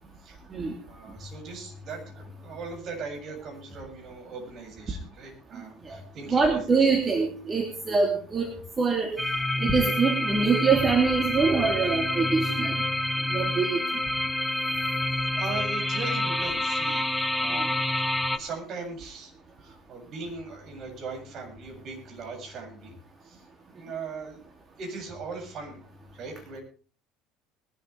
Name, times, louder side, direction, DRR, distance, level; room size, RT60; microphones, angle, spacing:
voice 1, 0.8-6.9 15.1-18.1 18.3-19.3 19.6-22.9 23.2-23.5 23.7-24.4 24.8-25.8 26.1-26.6, right 4 dB, 50° right, 2 dB, 7.7 m, -39 dB
voice 2, 6.3-9.1 9.6-12.8 13.3-13.8, right 4 dB, 30° right, 2 dB, 3.1 m, -24 dB
sound 1, 9.2-18.4, left 1 dB, 5° left, 1.3 m, -28 dB
21.5 x 13.0 x 3.5 m, 0.40 s
hypercardioid pair, 65°, 0 cm